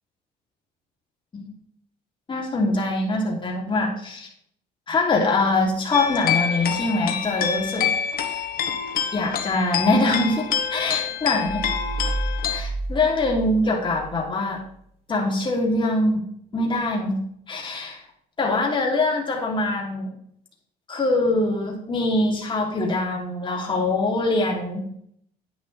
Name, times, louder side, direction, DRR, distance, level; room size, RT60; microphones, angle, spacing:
voice 1, 2.3-4.3 4.9-7.9 9.1-11.6 12.5-14.6 15.1-16.2 16.5-17.2 17.5-18.0 18.4-20.1 20.9-24.8, left 2 dB, 30° left, 0 dB, 3.1 m, -23 dB
sound 1, 5.9-12.6, left 8 dB, 60° left, 1.5 m, -26 dB
sound 2, 11.4-14.2, right 2 dB, 35° right, 2.4 m, -30 dB
10.0 x 9.7 x 3.4 m, 0.66 s
cardioid pair, 110°, 17 cm